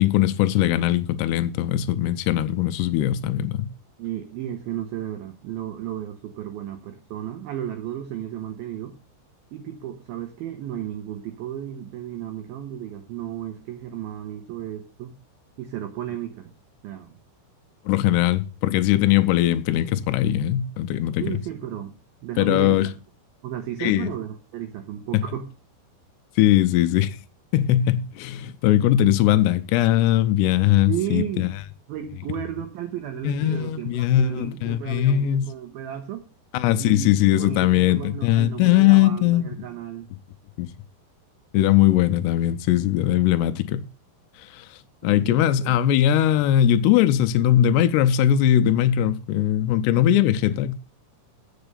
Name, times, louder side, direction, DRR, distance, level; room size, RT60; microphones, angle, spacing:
voice 1, 0.0-3.7 17.9-21.4 22.4-22.9 23.8-24.1 25.1-25.2 26.4-27.2 27.5-31.5 33.2-35.4 36.5-39.5 40.6-40.7 41.5-43.8 44.5-44.7 45.0-50.7, left 12 dB, 80° left, 2.5 m, -20 dB
voice 2, 4.0-9.0 9.5-15.1 15.6-16.5 16.8-17.2 21.2-21.9 22.2-22.8 23.4-25.5 30.9-31.5 31.9-36.3 36.8-40.1 45.0-45.8, right 11 dB, 75° right, 2.2 m, -33 dB
8.0 x 6.7 x 6.7 m
omnidirectional pair, 5.6 m